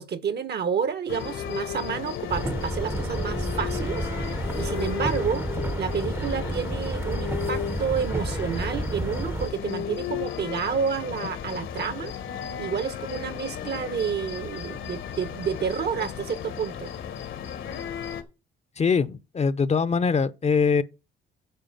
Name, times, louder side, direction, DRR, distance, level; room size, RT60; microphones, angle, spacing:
voice 1, 0.0-4.1 4.6-5.5 5.8-12.1 12.6-16.9, right 7 dB, 55° right, 1.1 m, -29 dB
sound 1, 1.1-18.2, left 9 dB, 75° left, 1.4 m, -35 dB
sound 2, 2.3-9.5, right 1 dB, 10° right, 0.7 m, -30 dB
voice 2, 18.8-20.8, left 5 dB, 35° left, 0.7 m, -22 dB
9.1 x 4.8 x 7.2 m
cardioid pair, 90°, 20 cm